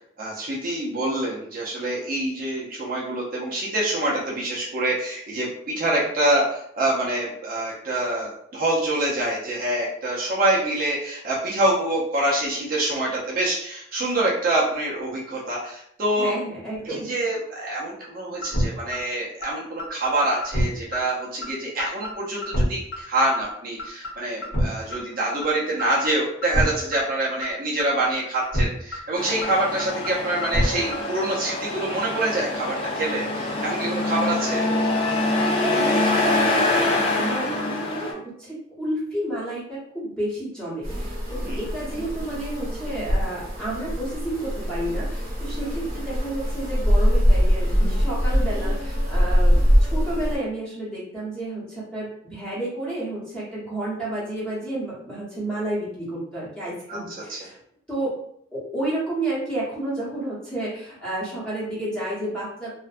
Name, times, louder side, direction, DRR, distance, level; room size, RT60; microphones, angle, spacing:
voice 1, 0.2-16.3 16.8-34.7 41.4-41.6 56.9-57.4, right 1 dB, 45° right, -5 dB, 0.5 m, -26 dB
voice 2, 16.2-17.1 35.6-57.6 57.9-58.2 58.5-62.7, right 1 dB, 5° left, -9 dB, 0.9 m, -31 dB
sound 1, 18.4-18.7 18.9-19.0 19.4-19.5 19.8-20.1 20.4-20.7 20.9-21.0 21.4-21.5 21.8-22.1 22.4-22.7 22.9-23.0 23.4-23.5 23.8-24.1 24.4-24.7 24.9-25.0 25.4-25.5 25.8-26.1 26.4-26.7 26.9-27.0 27.4-27.5 27.8-28.1 28.4-28.7 28.9-29.0 29.4-29.5 29.8-30.1 30.4-30.7 30.9-31.0, equal, 65° left, 0.9 m, -24 dB
Truck, 29.2-38.1, left 2 dB, 25° left, 0.3 m, -25 dB
sound 2, 40.8-50.4, equal, 85° right, 0.9 m, -23 dB
2.5 x 2.1 x 2.4 m, 0.69 s
head